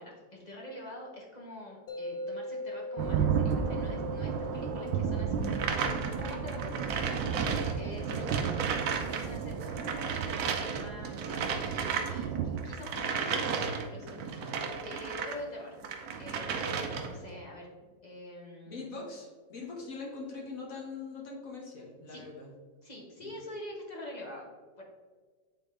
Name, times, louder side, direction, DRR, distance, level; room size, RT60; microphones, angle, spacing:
voice 1, 0.0-10.3 10.7-15.8 16.2-18.9 22.1-22.2 22.8-24.5 24.8-24.9, left 1 dB, 30° left, -2 dB, 0.9 m, -46 dB
sound 1, 1.9-14.9, left 1 dB, 80° left, 0.4 m, -44 dB
sound 2, 3.0-12.7, right 7 dB, 85° right, 1.3 m, -33 dB
sound 3, 5.4-9.3 9.5-15.4 15.8-17.3, right 6 dB, 70° right, 1.0 m, -34 dB
voice 2, 18.7-22.5 23.2-23.3, left 4 dB, 50° left, -2 dB, 1.6 m, -42 dB
8.7 x 3.7 x 3.3 m, 1.4 s
omnidirectional pair, 1.9 m